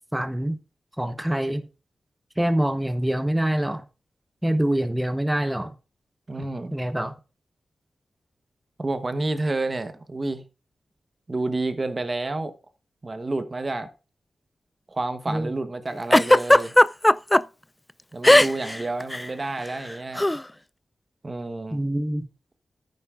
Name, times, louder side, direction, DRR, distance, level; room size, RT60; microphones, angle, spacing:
voice 1, 0.1-0.6 1.0-1.6 2.4-3.8 4.4-5.7 6.4-7.1 15.3-15.5 21.7-22.3, right 1 dB, 10° right, 1.0 m, -25 dB
voice 2, 6.3-6.7 8.8-10.4 11.3-12.5 13.0-13.9 14.9-16.8 18.1-20.3 21.2-21.8, right 2 dB, 35° right, 1.0 m, -29 dB
Giggle, 16.1-17.4 18.2-18.8 19.0-19.2 20.2-20.4, left 1 dB, 15° left, 0.3 m, -15 dB
11.0 x 9.2 x 2.5 m
cardioid pair, 70°, 0 cm